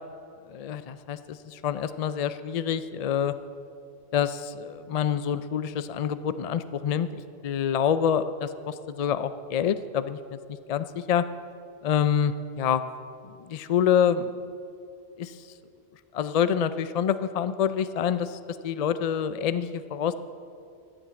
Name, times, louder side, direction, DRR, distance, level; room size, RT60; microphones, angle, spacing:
voice 1, 0.5-3.3 4.1-7.1 7.4-10.4 10.7-11.2 11.8-12.8 13.4-14.3 15.2-15.4 16.1-18.4 18.6-20.1, left 8 dB, 60° left, 12 dB, 0.4 m, -26 dB
14.5 x 8.8 x 7.5 m, 2.6 s
omnidirectional pair, 1.1 m